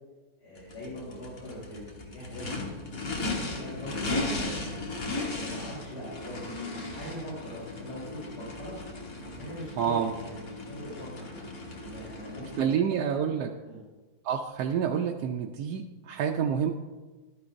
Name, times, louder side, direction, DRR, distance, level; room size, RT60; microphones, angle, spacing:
voice 1, 0.4-2.7 3.4-5.0 5.4-6.4 6.7-8.8 9.2-13.0 13.6-13.8, equal, 85° left, -10 dB, 4.2 m, -42 dB
Race car auto racing / Idling / Accelerating revving vroom, 0.6-12.6, left 2 dB, 60° left, 1.8 m, -36 dB
voice 2, 9.8-10.1 12.6-13.5 14.2-16.7, right 8 dB, 80° right, 2 dB, 1.1 m, -28 dB
12.0 x 9.8 x 2.6 m, 1.2 s
omnidirectional pair, 1.7 m